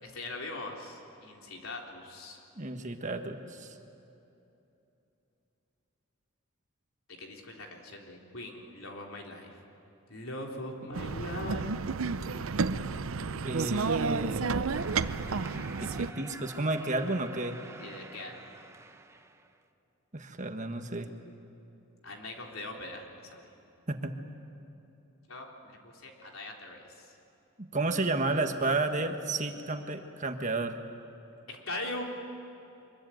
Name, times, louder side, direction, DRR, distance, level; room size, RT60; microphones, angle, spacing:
voice 1, 0.0-2.4 7.1-9.6 10.1-11.7 17.8-18.6 22.0-23.5 25.3-27.2 31.5-32.0, left 2 dB, 75° left, 1 dB, 3.6 m, -41 dB
voice 2, 2.6-3.7 13.4-14.4 15.8-17.6 20.1-21.1 23.9-24.1 27.6-30.8, right 2 dB, 35° right, 6 dB, 1.5 m, -32 dB
sound 1, 10.9-16.1, right 4 dB, 75° right, 0.7 m, -31 dB
sound 2, 14.7-19.6, right 2 dB, 15° right, 0.9 m, -48 dB
24.5 x 22.5 x 9.3 m, 2.9 s
head